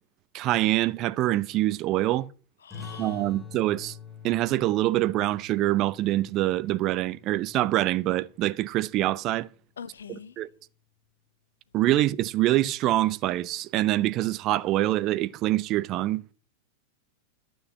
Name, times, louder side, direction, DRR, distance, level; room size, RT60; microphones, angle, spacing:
voice 1, 0.3-2.3 3.0-4.0 4.2-9.5 10.4-10.5 11.7-16.2, right 15 dB, 35° right, 0.6 m, -25 dB
voice 2, 2.6-3.3 9.8-10.4, left 7 dB, 70° left, 0.6 m, -44 dB
sound 1, 2.7-7.9, left 7 dB, ahead, 2.7 m, -46 dB
12.5 x 6.4 x 7.2 m
figure-of-eight pair, 90°, 0 cm